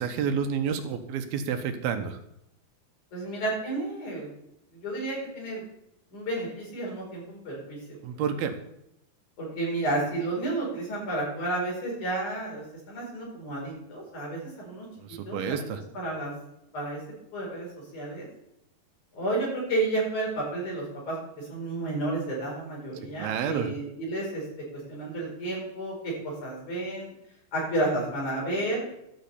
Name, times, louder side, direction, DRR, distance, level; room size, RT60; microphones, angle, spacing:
voice 1, 0.0-2.2 8.0-8.5 15.0-15.8 23.2-23.7, right 7 dB, 80° right, 7 dB, 2.8 m, -29 dB
voice 2, 3.1-4.4 4.7-5.6 6.1-8.0 9.4-15.6 15.9-16.3 16.7-17.0 17.3-18.3 19.1-27.1 27.5-28.8, right 2 dB, 50° left, -3 dB, 6.5 m, -31 dB
12.5 x 6.3 x 8.4 m, 0.80 s
omnidirectional pair, 4.4 m